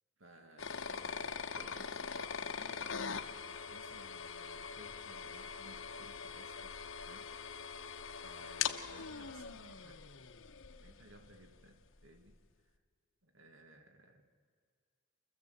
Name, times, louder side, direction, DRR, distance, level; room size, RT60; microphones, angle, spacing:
voice 1, 0.2-7.6 8.2-10.0 10.8-12.8 13.2-14.2, right 1 dB, 70° right, 5 dB, 2.0 m, -59 dB
sound 1, 0.6-11.4, left 6 dB, 75° left, 1.1 m, -42 dB
29.5 x 14.5 x 8.0 m, 2.1 s
head